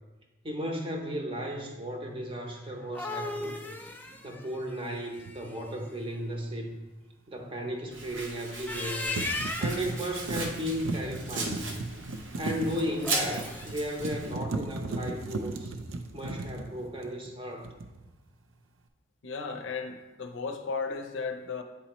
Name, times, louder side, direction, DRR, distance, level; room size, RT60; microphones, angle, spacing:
voice 1, 0.4-3.6 3.8-6.8 7.3-9.2 9.6-11.7 12.4-15.7 16.1-17.7, equal, 25° right, 2 dB, 0.7 m, -35 dB
sound 1, 2.7-5.7 8.5-10.0 12.9-13.8, left 2 dB, 10° left, 0.3 m, -36 dB
sound 2, 5.2-5.4 8.5-8.8 9.2-17.3 17.6-18.1, right 2 dB, 90° right, 0.5 m, -36 dB
Domestic sounds home sounds, 7.9-14.3, right 3 dB, 75° right, 0.9 m, -38 dB
voice 2, 19.2-21.6, left 4 dB, 70° left, 6 dB, 0.5 m, -35 dB
8.7 x 4.1 x 3.0 m, 1.1 s
head